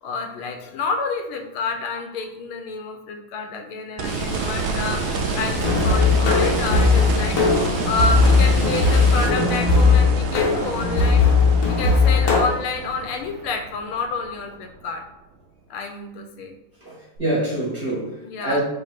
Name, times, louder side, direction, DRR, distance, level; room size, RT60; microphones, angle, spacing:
voice 1, 0.0-5.0 5.3-7.4 7.8-11.3 11.6-15.0 15.7-16.6 18.2-18.6, left 4 dB, 85° left, 4 dB, 1.5 m, -29 dB
sound 1, 4.0-9.3, left 1 dB, 30° left, 0.3 m, -33 dB
sound 2, 4.0-14.9 17.2-17.3, right 4 dB, 75° right, 1.3 m, -28 dB
sound 3, 5.5-12.4, left 4 dB, 60° left, 0.9 m, -18 dB
voice 2, 16.8-18.6, right 1 dB, 30° right, -7 dB, 1.3 m, -26 dB
3.9 x 3.1 x 4.3 m, 0.90 s
omnidirectional pair, 2.3 m